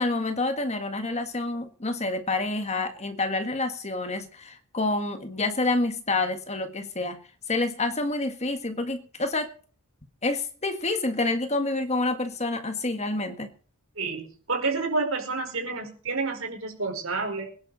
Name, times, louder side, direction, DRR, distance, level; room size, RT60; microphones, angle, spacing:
voice 1, 0.0-7.2 7.5-9.5 10.2-13.5, left 2 dB, 30° left, 8 dB, 1.7 m, -28 dB
voice 2, 14.0-17.5, right 3 dB, 65° right, 3 dB, 5.0 m, -29 dB
22.0 x 11.0 x 4.2 m, 0.43 s
head